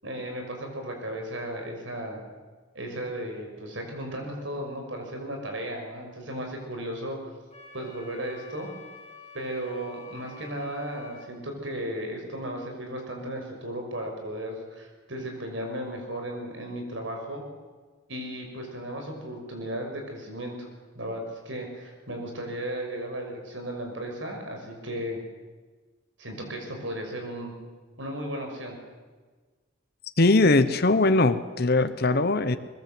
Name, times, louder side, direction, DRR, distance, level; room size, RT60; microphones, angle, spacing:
voice 1, 0.0-2.2 2.7-7.2 7.7-8.7 9.3-17.4 18.1-20.7 20.9-25.2 26.2-27.5 28.0-28.8, right 1 dB, 70° right, 3 dB, 6.1 m, -35 dB
Wind instrument woodwind instrument, 7.5-11.3, left 4 dB, 30° left, 7.3 m, -48 dB
voice 2, 30.2-32.6, left 2 dB, 50° left, 10 dB, 1.0 m, -21 dB
22.5 x 21.5 x 7.8 m, 1.4 s
head